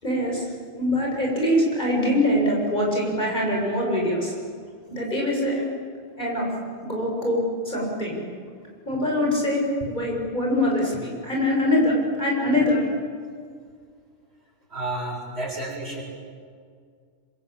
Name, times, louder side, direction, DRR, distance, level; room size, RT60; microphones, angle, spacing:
voice 1, 0.0-0.5 0.8-4.3 4.9-5.7 6.2-6.5 6.8-7.4 7.6-8.2 8.9-12.9, left 1 dB, 35° left, -2 dB, 7.3 m, -23 dB
voice 2, 14.7-16.0, right 2 dB, 55° right, -2 dB, 7.6 m, -31 dB
26.0 x 25.5 x 8.8 m, 2.1 s
omnidirectional pair, 1.3 m